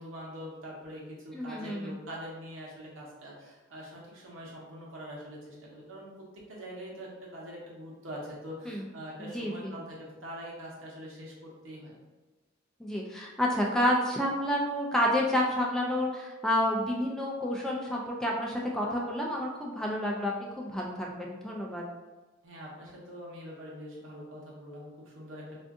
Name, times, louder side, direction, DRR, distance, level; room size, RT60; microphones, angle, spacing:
voice 1, 0.0-6.1 6.5-12.0 22.4-25.5, equal, 80° right, -4 dB, 0.9 m, -44 dB
voice 2, 1.3-1.9 8.7-8.8 9.2-9.7 12.8-21.9, equal, 5° left, -2 dB, 0.3 m, -30 dB
2.5 x 2.5 x 3.5 m, 1.2 s
head